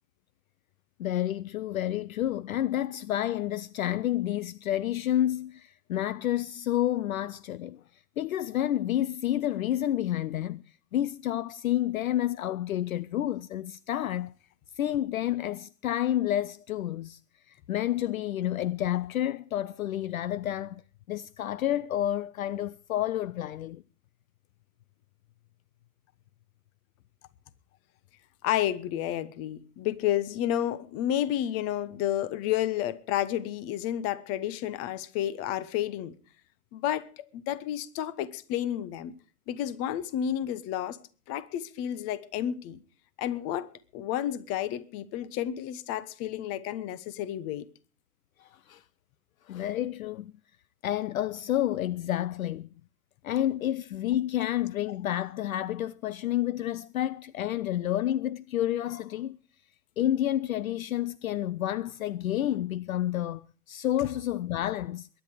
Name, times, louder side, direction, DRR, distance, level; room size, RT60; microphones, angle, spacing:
voice 1, 1.0-7.8 8.2-10.6 10.9-14.3 14.8-17.2 17.5-20.8 21.1-23.8 48.4-48.8 49.5-50.3 50.8-52.7 53.2-59.4 60.0-65.1, left 12 dB, 60° left, 0.6 m, -29 dB
voice 2, 28.4-36.2 36.7-39.1 39.5-41.0 41.3-42.8 43.2-47.7, left 11 dB, 30° left, 1.1 m, -31 dB
21.5 x 10.5 x 5.0 m
figure-of-eight pair, 110°, 47 cm